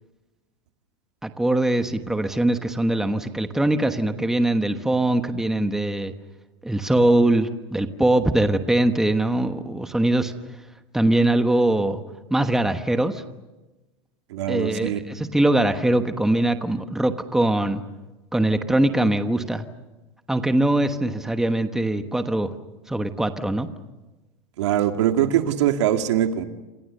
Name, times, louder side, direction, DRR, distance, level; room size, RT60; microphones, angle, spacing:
voice 1, 1.2-6.1 6.6-10.3 10.9-12.0 12.3-13.2 14.5-17.8 18.3-19.6 20.3-22.5 22.9-23.7, right 1 dB, 5° right, 8 dB, 1.2 m, -22 dB
voice 2, 14.3-15.0 24.6-26.4, right 11 dB, 85° right, 6 dB, 2.4 m, -22 dB
27.5 x 27.5 x 6.7 m, 1.1 s
supercardioid pair, 150°, 14 cm